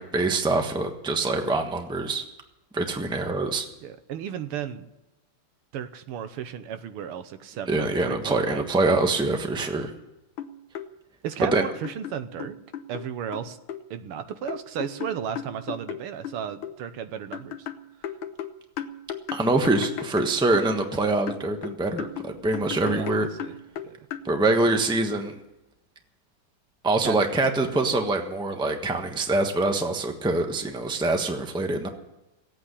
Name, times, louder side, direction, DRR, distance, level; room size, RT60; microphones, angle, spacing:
voice 1, 0.0-2.2 2.7-3.6 7.7-9.9 11.4-11.6 19.3-23.3 24.2-25.4 26.8-31.9, right 2 dB, 5° right, 4 dB, 0.8 m, -24 dB
voice 2, 3.8-4.9 5.7-8.7 11.2-12.6 12.9-13.6 13.9-17.7 18.0-18.1 22.8-23.6 23.8-24.0 27.0-27.2, right 8 dB, 85° right, 10 dB, 1.8 m, -34 dB
sound 1, 10.1-10.2 10.4-10.9 11.5-13.1 13.3-13.8 14.5-16.8 17.3-21.0 21.3-24.3, left 8 dB, 70° left, 1.6 m, -35 dB
17.0 x 8.7 x 9.9 m, 0.95 s
omnidirectional pair, 2.4 m